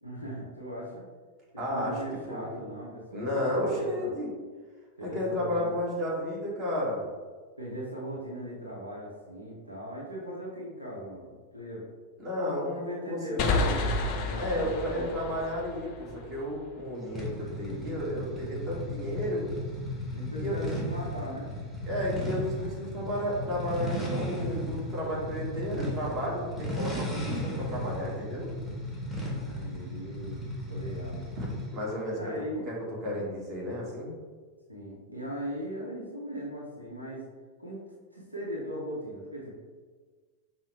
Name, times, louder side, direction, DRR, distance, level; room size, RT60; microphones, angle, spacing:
voice 1, 0.0-1.0 1.5-4.1 5.0-5.7 7.6-11.8 12.4-14.0 14.3-15.1 20.1-21.5 29.0-29.2 29.5-30.4 30.7-31.3 32.1-32.7 34.7-37.2 37.6-37.8 38.1-39.6, equal, 85° right, -4 dB, 0.7 m, -39 dB
voice 2, 1.6-1.9 2.3-2.5 3.1-4.3 5.0-7.0 12.2-13.7 14.3-19.4 20.3-20.7 21.8-28.5 31.4-32.3 32.6-32.7 33.0-34.1, left 1 dB, 30° right, -4 dB, 1.4 m, -32 dB
sound 1, 13.4-16.9, left 3 dB, 40° left, 0.5 m, -31 dB
sound 2, 17.2-31.8, equal, ahead, 0.9 m, -35 dB
5.4 x 2.1 x 3.3 m, 1.5 s
figure-of-eight pair, 90°, 0 cm